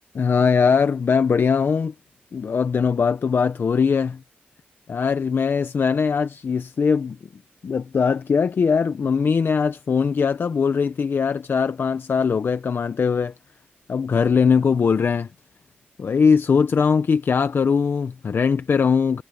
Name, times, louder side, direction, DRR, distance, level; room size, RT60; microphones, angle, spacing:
voice 1, 0.1-1.9 2.3-4.2 4.9-7.2 7.6-13.3 13.9-15.3 16.0-19.2, left 6 dB, 65° left, 0.7 m, -20 dB
wide cardioid pair, 85°, 4 cm